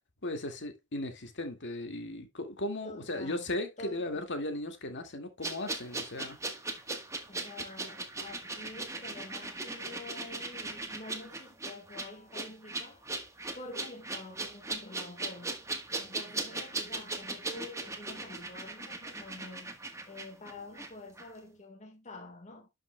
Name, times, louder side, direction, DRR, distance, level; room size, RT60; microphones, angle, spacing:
voice 1, 0.2-6.4, left 2 dB, 55° left, 2.0 m, -37 dB
voice 2, 2.8-3.5 3.8-4.0 7.3-13.0 13.6-15.6 16.0-19.8 20.1-22.7, left 2 dB, 35° left, 1.6 m, -47 dB
sound 1, 5.4-20.9 21.2-21.3, right 3 dB, 15° right, 1.3 m, -39 dB
11.5 x 6.1 x 2.2 m
head